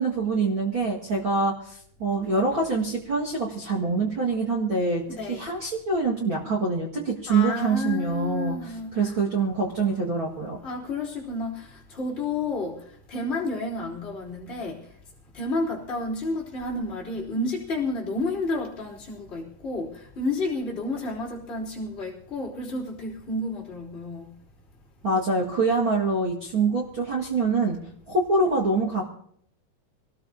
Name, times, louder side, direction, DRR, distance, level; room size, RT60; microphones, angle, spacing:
voice 1, 0.0-5.0 5.3-10.6 25.0-27.8 28.1-29.0, right 3 dB, 40° right, 2.1 m, -25 dB
voice 2, 5.1-5.5 7.3-8.9 10.6-12.8 13.1-14.8 15.3-24.3, left 2 dB, 15° left, 3.4 m, -31 dB
25.0 x 19.0 x 2.8 m
omnidirectional pair, 4.4 m